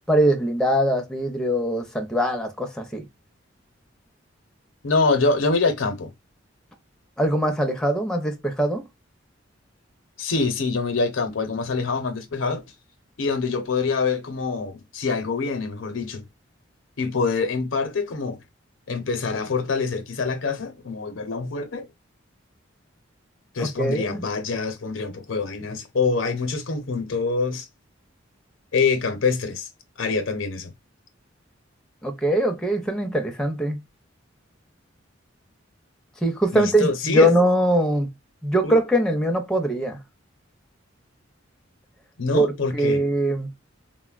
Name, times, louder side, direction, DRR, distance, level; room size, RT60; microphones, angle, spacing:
voice 1, 0.1-3.0 7.2-8.8 23.6-24.2 32.0-33.8 36.2-38.1 38.4-40.0 42.3-42.5 42.7-43.5, right 1 dB, 5° left, 0.5 m, -22 dB
voice 2, 4.8-6.1 10.2-12.6 13.2-16.2 17.0-18.4 18.9-21.9 23.5-27.7 28.7-29.7 30.0-30.7 36.5-37.3 38.6-38.7 42.2-43.0, left 4 dB, 80° left, 0.6 m, -25 dB
3.8 x 2.1 x 2.3 m
head